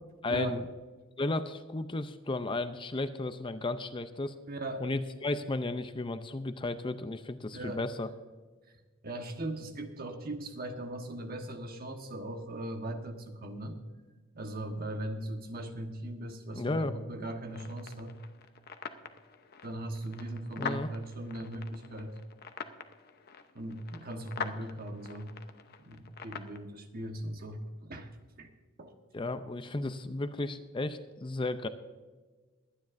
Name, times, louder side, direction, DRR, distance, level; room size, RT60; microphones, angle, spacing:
voice 1, 0.2-0.6 1.2-4.3 4.8-8.1 16.6-16.9 20.6-20.9 29.1-31.7, left 2 dB, 25° left, 10 dB, 0.5 m, -34 dB
voice 2, 4.5-4.8 7.5-7.8 9.0-13.8 14.3-18.1 19.6-22.1 23.5-25.3 25.8-28.1 28.4-28.5 28.8-28.9, right 1 dB, 45° right, 5 dB, 1.3 m, -39 dB
sound 1, 17.5-26.6, left 6 dB, 50° left, 0.8 m, -44 dB
22.5 x 9.6 x 2.6 m, 1.3 s
head